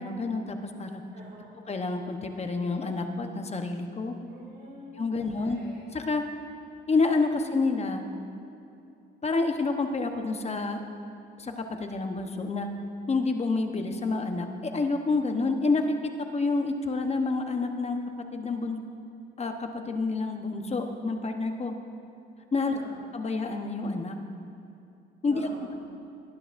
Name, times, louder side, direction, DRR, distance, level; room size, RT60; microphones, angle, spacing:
voice 1, 0.0-1.0 1.7-4.1 5.0-5.6 5.9-6.3 6.9-8.0 9.2-10.8 11.4-12.7 13.1-18.8 19.4-21.7 22.5-22.8 23.1-24.2 25.2-25.5, left 3 dB, 30° left, 5 dB, 1.0 m, -28 dB
voice 2, 1.1-1.6 4.2-5.8 22.7-23.0 25.3-25.7, right 1 dB, 55° right, -7 dB, 2.6 m, -46 dB
19.0 x 10.5 x 2.6 m, 2.7 s
cardioid pair, 90°, 20 cm